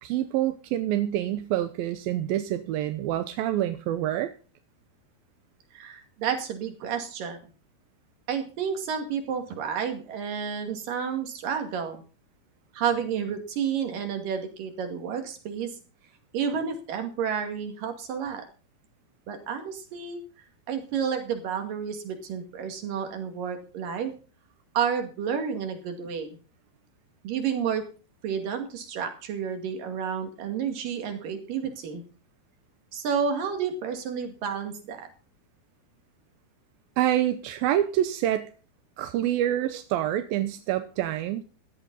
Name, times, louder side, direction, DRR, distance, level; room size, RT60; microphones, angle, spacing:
voice 1, 0.0-4.3 37.0-38.5 39.0-41.4, right 12 dB, 75° right, 9 dB, 2.3 m, -27 dB
voice 2, 5.7-7.4 8.3-12.0 12.7-15.7 16.3-18.4 19.3-20.2 20.7-24.1 24.8-26.4 27.2-27.8 28.2-32.0 32.9-35.1 39.6-39.7, right 7 dB, 55° right, 5 dB, 3.7 m, -30 dB
16.0 x 12.0 x 4.1 m, 0.37 s
omnidirectional pair, 4.8 m